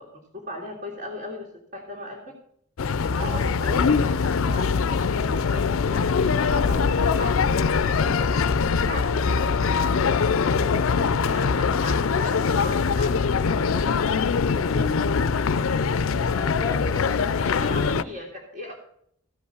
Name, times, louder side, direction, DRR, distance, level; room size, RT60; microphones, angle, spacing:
voice 1, 0.0-2.3 3.1-4.1 4.4-8.5 8.9-9.7 11.2-13.9 17.4-18.7, left 1 dB, 45° right, -2 dB, 2.3 m, -38 dB
sound 1, 2.8-18.0, left 5 dB, 75° left, 0.5 m, -22 dB
voice 2, 14.5-15.0 16.2-18.0, left 2 dB, 15° left, 11 dB, 0.9 m, -38 dB
15.0 x 5.5 x 6.6 m, 0.67 s
head